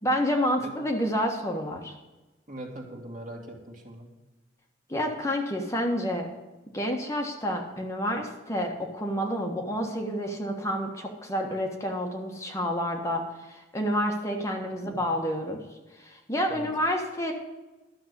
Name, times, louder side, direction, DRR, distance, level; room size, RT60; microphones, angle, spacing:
voice 1, 0.0-1.9 4.9-6.3 6.7-15.6 15.9-17.3, equal, 15° left, 1 dB, 1.4 m, -29 dB
voice 2, 2.5-4.1 14.8-15.0 16.5-16.7, right 1 dB, 45° right, 2 dB, 2.3 m, -41 dB
12.5 x 6.7 x 8.1 m, 1.1 s
head